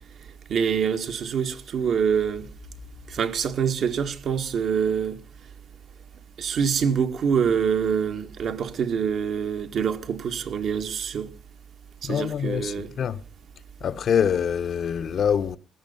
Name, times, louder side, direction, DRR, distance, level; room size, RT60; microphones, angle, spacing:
voice 1, 0.5-2.5 3.1-5.2 6.4-11.3 12.0-12.9, right 7 dB, 65° right, 1.9 m, -25 dB
voice 2, 12.0-13.2 13.8-15.6, left 8 dB, 60° left, 0.9 m, -25 dB
16.5 x 13.5 x 5.7 m
cardioid pair, 90°, 0 cm